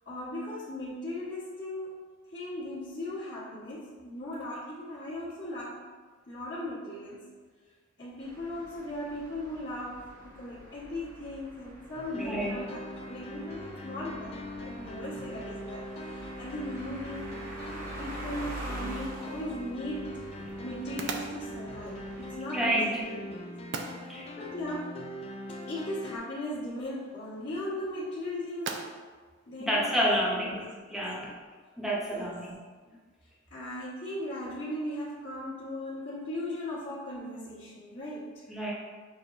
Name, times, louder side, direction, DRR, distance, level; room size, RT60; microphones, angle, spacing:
voice 1, 0.0-2.0 2.3-5.9 6.3-7.2 8.0-17.3 18.0-20.3 20.6-23.6 24.4-25.1 25.6-28.9 29.5-31.0 32.1-32.3 32.8-33.0 33.5-38.4, left 1 dB, 55° left, -14 dB, 1.3 m, -38 dB
sound 1, 8.2-22.3, right 1 dB, 45° right, 0.8 m, -45 dB
sound 2, 11.9-26.2, left 1 dB, 30° left, 0.4 m, -41 dB
voice 2, 12.1-12.6 22.5-23.0 24.1-24.3 29.6-31.4 31.8-32.5 38.5-38.7, equal, ahead, -5 dB, 0.7 m, -29 dB
sound 3, 18.8-30.5, right 4 dB, 60° right, 0.4 m, -45 dB
6.2 x 2.9 x 2.6 m, 1.5 s
head